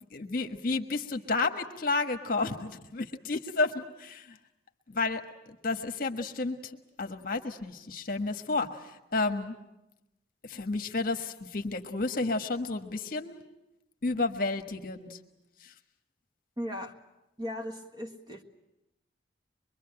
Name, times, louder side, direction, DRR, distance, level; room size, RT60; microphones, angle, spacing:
voice 1, 0.1-4.4 4.9-5.2 5.6-9.5 10.4-13.4 14.0-15.2 15.6-15.7, left 3 dB, 50° left, 6 dB, 1.4 m, -31 dB
voice 2, 16.6-16.9 17.4-18.4, equal, 20° right, 3 dB, 1.6 m, -37 dB
23.5 x 23.5 x 8.8 m, 0.94 s
head